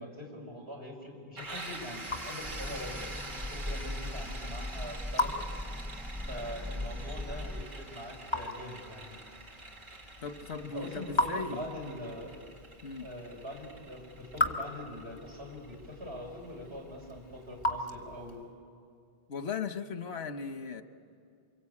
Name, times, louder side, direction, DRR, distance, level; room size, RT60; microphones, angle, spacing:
voice 1, 0.0-3.1 3.4-5.5 6.3-9.1 10.6-12.3 13.0-18.4, left 1 dB, 80° right, -2 dB, 5.7 m, -43 dB
Raindrop / Drip, 1.4-18.6, left 1 dB, 25° left, 1.4 m, -39 dB
sound 1, 1.4-17.0, right 2 dB, 55° right, 2.2 m, -46 dB
sound 2, 2.4-7.6, left 1 dB, ahead, 0.8 m, -39 dB
voice 2, 10.2-11.7 12.8-13.1 19.3-20.8, left 5 dB, 85° left, 9 dB, 1.3 m, -37 dB
28.0 x 25.0 x 8.5 m, 2.3 s
omnidirectional pair, 1.0 m